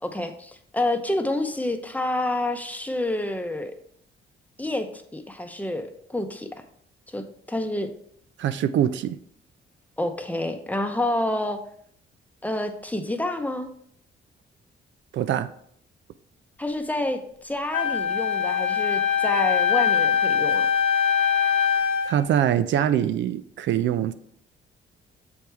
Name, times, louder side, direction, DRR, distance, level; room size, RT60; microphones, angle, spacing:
voice 1, 0.0-3.7 4.6-6.5 7.1-7.9 10.0-11.6 12.4-13.7 16.6-20.7, left 1 dB, 10° left, 6 dB, 0.7 m, -28 dB
voice 2, 8.4-9.2 15.1-15.5 22.1-24.1, right 10 dB, 70° right, 12 dB, 0.4 m, -23 dB
Wind instrument woodwind instrument, 17.7-22.2, left 8 dB, 60° left, 1.2 m, -22 dB
6.9 x 4.6 x 3.4 m, 0.66 s
cardioid pair, 90°, 20 cm